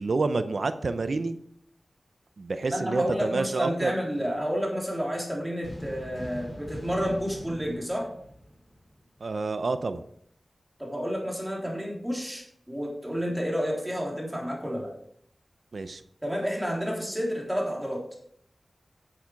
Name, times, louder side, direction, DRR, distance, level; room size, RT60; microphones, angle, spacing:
voice 1, 0.0-1.4 2.4-3.9 9.2-10.0 15.7-16.0, right 3 dB, 75° right, 11 dB, 0.7 m, -28 dB
voice 2, 2.7-8.1 10.8-14.9 16.2-18.1, equal, 10° right, -2 dB, 3.5 m, -30 dB
sound 1, 5.6-9.1, equal, 30° left, 2.7 m, -42 dB
9.8 x 8.5 x 4.7 m, 0.66 s
wide cardioid pair, 50°, 0 cm